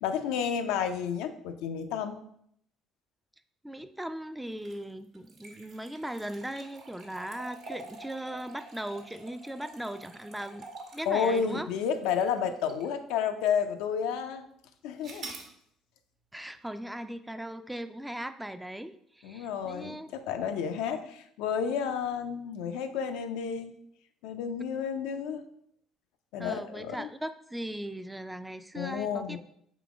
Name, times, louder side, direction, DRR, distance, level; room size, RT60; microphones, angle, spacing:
voice 1, 0.0-2.2 11.1-14.5 14.8-15.3 19.2-23.8 24.2-25.5 26.3-27.1 28.8-29.4, left 7 dB, 85° left, 7 dB, 0.4 m, -31 dB
voice 2, 3.6-10.7 10.9-11.7 16.3-20.1 26.4-29.4, right 1 dB, 5° right, 10 dB, 0.3 m, -38 dB
sound 1, 4.5-13.0 13.5-13.6 15.0-15.5, right 3 dB, 65° right, 1.0 m, -47 dB
3.7 x 3.0 x 4.8 m, 0.70 s
supercardioid pair, 80°, 0 cm